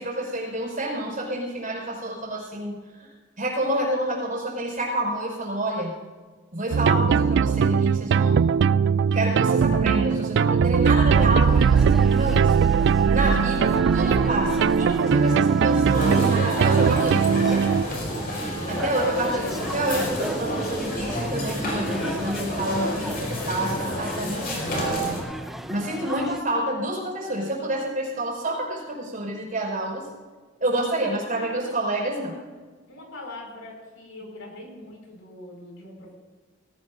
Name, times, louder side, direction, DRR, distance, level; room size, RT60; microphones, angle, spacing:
voice 1, 0.0-5.9 6.5-8.4 9.1-12.6 13.1-17.6 18.7-25.2 25.7-30.0 30.6-32.3, right 1 dB, 45° right, -1 dB, 5.5 m, -28 dB
voice 2, 6.7-7.0 13.3-13.8 31.1-31.7 32.9-36.1, left 2 dB, 80° left, 0 dB, 5.1 m, -43 dB
sound 1, 6.7-17.8, right 6 dB, 60° right, 0.3 m, -20 dB
sound 2, 11.1-26.4, equal, ahead, 0.6 m, -38 dB
sound 3, 15.9-25.2, equal, 50° left, 4.9 m, -29 dB
19.0 x 17.5 x 2.6 m, 1.4 s
head